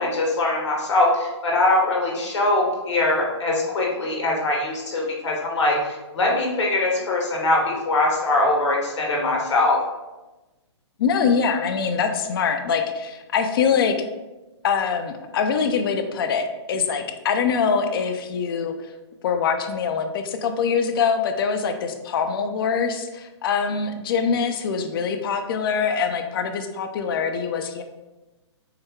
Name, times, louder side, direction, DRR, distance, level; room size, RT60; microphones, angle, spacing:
voice 1, 0.0-9.8, left 2 dB, 75° left, -1 dB, 1.3 m, -22 dB
voice 2, 11.0-14.0 14.6-18.7 19.2-27.8, left 6 dB, 50° left, 7 dB, 0.5 m, -23 dB
4.7 x 2.2 x 3.5 m, 1.1 s
hypercardioid pair, 135°, 15 cm